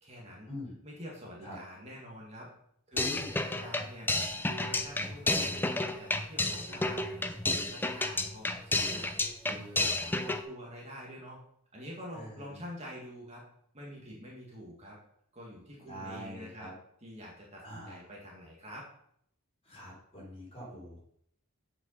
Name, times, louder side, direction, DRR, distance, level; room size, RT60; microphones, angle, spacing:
voice 1, 0.0-0.5 0.8-2.5 2.9-4.1 4.4-9.1 9.4-11.4 11.7-13.4 13.7-15.0 15.3-16.7 17.0-18.9, equal, 30° right, -3 dB, 2.1 m, -46 dB
voice 2, 2.9-3.3 6.7-6.8 12.1-12.5 15.8-16.7 17.6-18.0 19.6-21.0, equal, 25° left, -4 dB, 4.3 m, -44 dB
sound 1, 3.0-10.4, left 2 dB, 10° left, 0.5 m, -31 dB
7.8 x 5.9 x 5.6 m, 0.70 s
head